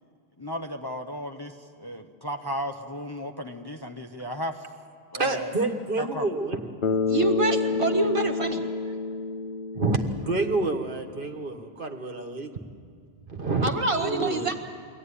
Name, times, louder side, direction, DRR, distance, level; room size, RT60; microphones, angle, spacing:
voice 1, 0.4-4.7 5.1-6.3, equal, 25° left, 3 dB, 0.9 m, -35 dB
voice 2, 5.1-7.2 7.8-8.1 8.8-8.9 9.7-12.5 13.3-14.5, right 3 dB, 50° right, 5 dB, 1.5 m, -29 dB
Bass guitar, 6.8-11.0, left 4 dB, 50° left, 1.1 m, -29 dB
voice 3, 7.1-8.6 13.6-14.5, right 3 dB, 30° right, 2 dB, 1.8 m, -26 dB
23.5 x 16.5 x 9.9 m, 2.2 s
omnidirectional pair, 1.1 m